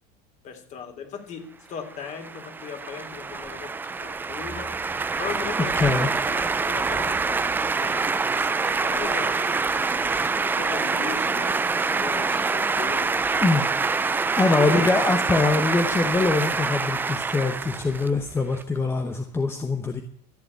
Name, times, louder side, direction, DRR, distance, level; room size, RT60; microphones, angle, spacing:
voice 1, 0.4-1.4 1.7-3.7 4.0-4.7 5.2-9.8 10.3-13.1 14.4-15.0, left 7 dB, 35° left, 5 dB, 3.3 m, -37 dB
sound 1, 1.9-18.6, right 4 dB, 10° right, 0.5 m, -26 dB
voice 2, 5.7-6.1 13.4-13.6 14.4-20.0, left 3 dB, 10° left, 5 dB, 1.0 m, -23 dB
14.0 x 8.1 x 8.7 m, 0.63 s
supercardioid pair, 145°, 21 cm